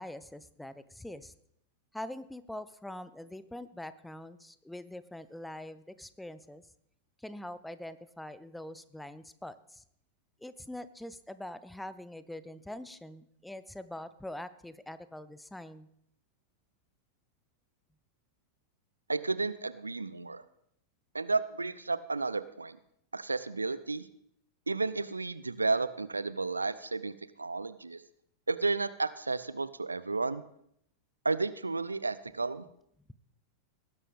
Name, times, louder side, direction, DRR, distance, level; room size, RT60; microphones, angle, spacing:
voice 1, 0.0-1.3 1.9-6.6 7.2-9.8 10.4-15.9, left 1 dB, 5° left, 15 dB, 0.6 m, -44 dB
voice 2, 19.1-20.4 21.1-22.8 23.1-24.1 24.7-28.0 28.5-30.4 31.2-32.6, right 3 dB, 80° right, 16 dB, 0.5 m, -32 dB
19.0 x 11.0 x 3.5 m, 0.72 s
figure-of-eight pair, 90°, 0 cm